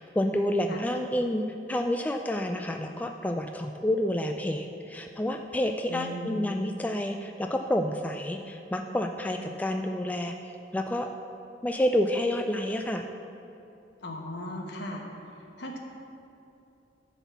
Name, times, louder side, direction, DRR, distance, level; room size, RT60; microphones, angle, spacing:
voice 1, 0.0-11.1 11.6-13.0, left 1 dB, 10° left, 4 dB, 0.3 m, -29 dB
voice 2, 5.9-6.5 14.0-15.0 15.6-15.8, left 1 dB, 65° left, 1 dB, 1.3 m, -37 dB
12.0 x 4.1 x 6.9 m, 2.8 s
head